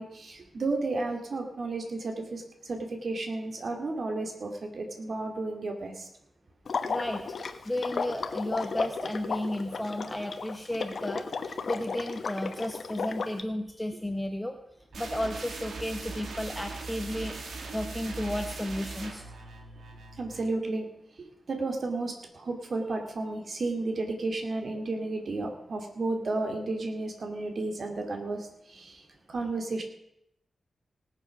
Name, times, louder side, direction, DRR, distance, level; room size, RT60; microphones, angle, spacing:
voice 1, 0.0-6.1 20.2-20.9 21.2-29.8, right 2 dB, 60° right, 4 dB, 2.5 m, -33 dB
Water / Liquid, 6.7-13.4, left 5 dB, 65° left, 1.1 m, -34 dB
voice 2, 6.9-7.2 7.6-14.6 15.0-17.3 17.7-19.2, left 1 dB, 10° left, 5 dB, 1.0 m, -33 dB
sound 1, 14.9-20.6, right 3 dB, 85° right, 2.1 m, -40 dB
18.5 x 7.2 x 6.1 m, 0.80 s
wide cardioid pair, 90°, 0 cm